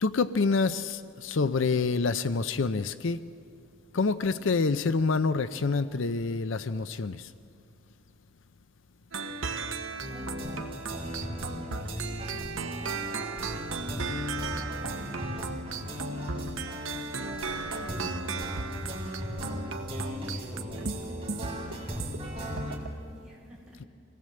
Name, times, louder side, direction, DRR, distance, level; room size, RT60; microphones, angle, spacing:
voice 1, 0.0-3.2 3.9-7.3, left 4 dB, 75° left, 12 dB, 0.6 m, -27 dB
sound 1, 9.1-22.2 22.6-22.9, right 4 dB, 85° right, 1.1 m, -36 dB
sound 2, 10.0-22.8, equal, 30° right, 3.7 m, -37 dB
voice 2, 10.1-10.7 11.0-13.0 13.8-16.4 19.3-19.7 20.0-23.8, equal, 5° right, -6 dB, 6.7 m, -52 dB
25.5 x 18.0 x 7.6 m, 2.4 s
head